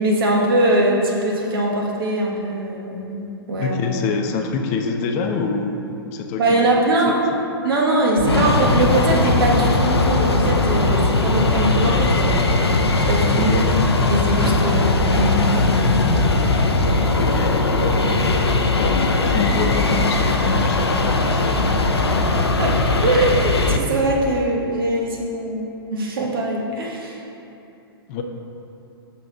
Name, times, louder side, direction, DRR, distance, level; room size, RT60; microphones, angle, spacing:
voice 1, 0.0-3.8 6.4-7.2 7.6-12.3 12.9-13.6 14.1-15.7 19.5-19.6 22.6-22.7 23.0-27.2, right 1 dB, 65° right, -2 dB, 1.3 m, -21 dB
voice 2, 3.6-6.7 7.1-7.2 13.3-13.6 17.2-18.1 18.4-21.6 28.1-28.2, left 4 dB, 40° left, 4 dB, 0.6 m, -26 dB
sound 1, 8.2-23.8, left 2 dB, 85° left, 0.5 m, -19 dB
6.3 x 4.1 x 5.8 m, 2.8 s
figure-of-eight pair, 110°, 13 cm